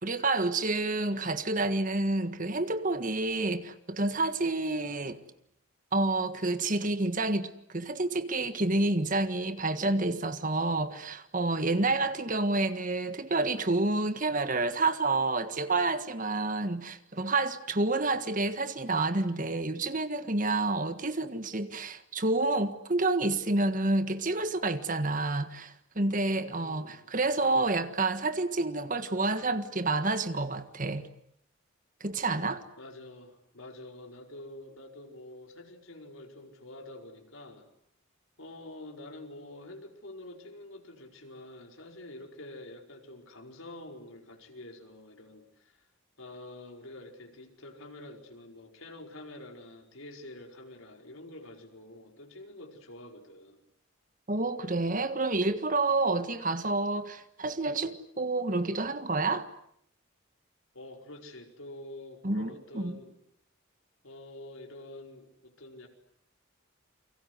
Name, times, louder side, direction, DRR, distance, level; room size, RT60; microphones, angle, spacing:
voice 1, 0.0-5.2 5.9-31.0 32.0-32.6 54.3-59.5 62.2-63.0, right 2 dB, 40° right, 1.6 m, -29 dB
voice 2, 11.7-12.1 26.4-27.0 32.8-37.7 38.4-45.8 46.2-53.6 60.7-63.1 64.0-65.9, left 1 dB, 85° left, 5.0 m, -47 dB
29.5 x 24.0 x 8.1 m
head